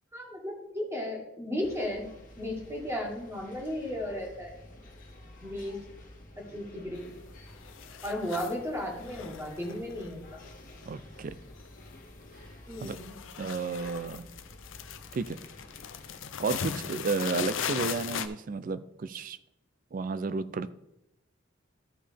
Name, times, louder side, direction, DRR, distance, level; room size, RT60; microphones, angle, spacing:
voice 1, 0.1-2.1 2.4-4.5 5.4-5.8 6.5-7.1 8.0-10.4 12.7-13.2, left 1 dB, 15° right, 0 dB, 1.7 m, -35 dB
sound 1, 1.6-16.2, left 1 dB, 45° left, 1.7 m, -51 dB
sound 2, 7.0-7.4 7.6-8.6 9.0-11.2 11.5-11.9 12.2-18.3, left 7 dB, 70° left, 0.5 m, -38 dB
voice 2, 10.9-11.3 12.8-13.0 13.4-14.2 15.1-15.4 16.4-19.4 19.9-20.7, right 4 dB, 45° right, 15 dB, 0.4 m, -32 dB
13.0 x 5.4 x 3.4 m, 0.87 s
head